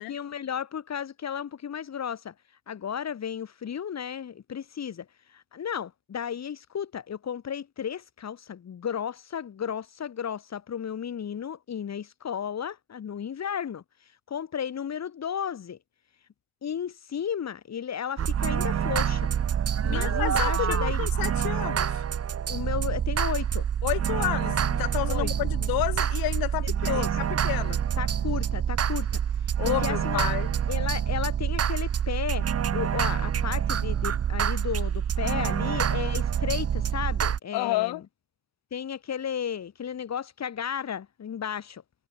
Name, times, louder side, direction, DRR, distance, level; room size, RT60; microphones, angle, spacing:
voice 1, 0.0-2.3 2.7-5.1 5.3-13.8 14.3-15.8 16.6-19.3 19.9-21.0 22.5-23.6 25.1-25.3 26.6-27.1 28.0-29.2 29.6-30.3 30.7-32.5 32.7-38.0 38.7-41.8, left 8 dB, 50° left, 7.2 m, -33 dB
sound 1, 18.2-37.4, right 8 dB, 45° right, 1.9 m, -26 dB
voice 2, 19.8-22.0 23.8-27.8 29.6-30.5 37.5-38.0, left 19 dB, 80° left, 1.2 m, -30 dB
cardioid pair, 90°, 35 cm